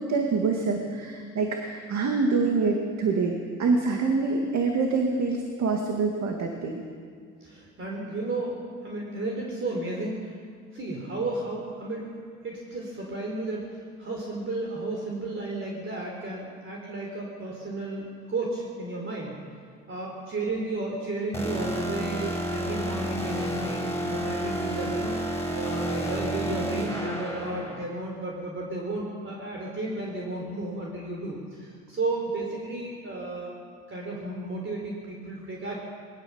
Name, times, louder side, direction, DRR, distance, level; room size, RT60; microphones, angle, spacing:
voice 1, 0.0-6.8, right 4 dB, 65° right, 2 dB, 2.3 m, -26 dB
voice 2, 7.4-8.5 8.8-10.4 10.7-12.0 12.4-19.4 19.9-25.2 25.5-33.5 33.9-35.8, right 2 dB, 40° right, -2 dB, 4.3 m, -33 dB
sound 1, 21.3-27.8, right 1 dB, 10° left, 6.7 m, -30 dB
21.5 x 18.0 x 7.3 m, 2.1 s
cardioid pair, 90°, 30 cm